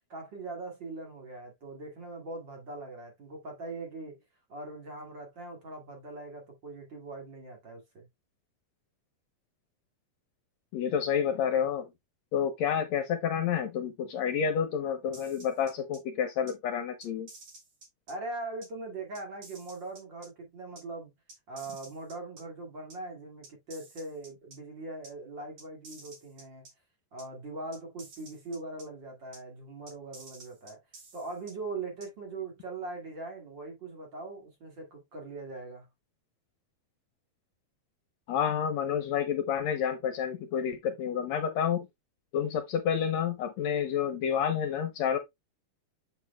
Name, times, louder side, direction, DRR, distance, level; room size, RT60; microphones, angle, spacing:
voice 1, 0.1-4.2 4.5-8.1 18.1-21.1 21.5-26.6 27.1-30.8 31.1-35.9, right 2 dB, 40° right, 2.6 m, -41 dB
voice 2, 10.7-11.9 12.3-17.3 38.3-41.9 42.3-45.2, left 8 dB, 70° left, 1.9 m, -29 dB
sound 1, 15.1-16.0 16.5-16.6 17.0-18.1 18.6-18.7 19.1-20.3 20.8-20.9 21.3-22.4 22.9-23.0 23.4-24.6 25.0-25.1 25.6-26.7 27.2-27.3 27.7-28.8 29.3-29.4 29.9-31.5 32.0-32.1, right 3 dB, 60° right, 3.7 m, -51 dB
8.1 x 6.4 x 2.2 m
omnidirectional pair, 3.4 m